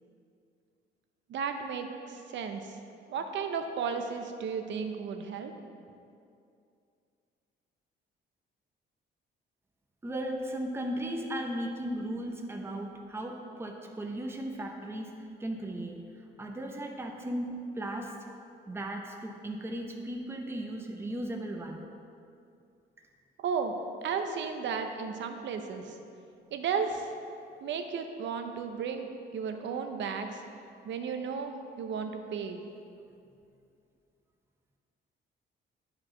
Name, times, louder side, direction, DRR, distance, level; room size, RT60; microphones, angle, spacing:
voice 1, 1.3-2.8 3.1-5.5 23.4-23.7 24.0-26.0 26.5-27.1 27.6-30.4 30.8-32.6, right 6 dB, 65° right, 6 dB, 0.7 m, -34 dB
voice 2, 10.0-18.1 18.7-21.9, right 1 dB, 10° right, 1 dB, 0.7 m, -36 dB
9.5 x 4.8 x 3.8 m, 2.5 s
cardioid pair, 90°, 20 cm